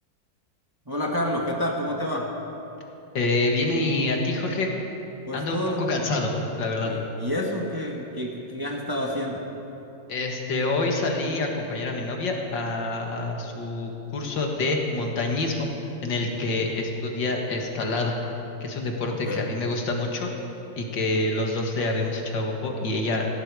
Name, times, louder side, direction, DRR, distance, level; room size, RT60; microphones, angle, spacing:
voice 1, 0.9-2.3 5.3-5.9 6.8-9.4 19.1-19.4, left 1 dB, 15° right, -1 dB, 1.4 m, -29 dB
voice 2, 3.1-4.7 5.3-6.3 6.6-6.9 10.1-15.7 16.0-18.2 18.6-20.3 20.8-23.3, left 2 dB, 80° left, 1 dB, 2.4 m, -27 dB
18.0 x 16.5 x 4.9 m, 3.0 s
omnidirectional pair, 1.9 m